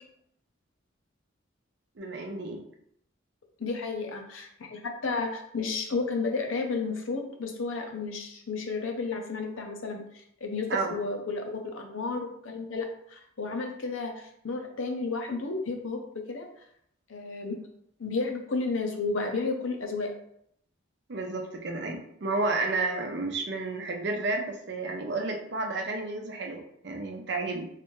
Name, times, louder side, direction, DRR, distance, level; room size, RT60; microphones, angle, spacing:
voice 1, 2.0-2.6 10.7-11.0 21.1-27.7, right 3 dB, 60° right, 3 dB, 0.6 m, -31 dB
voice 2, 3.6-10.0 10.4-16.5 17.1-17.6 18.0-20.1, left 3 dB, 90° left, 3 dB, 0.7 m, -32 dB
3.3 x 3.2 x 3.1 m, 0.71 s
head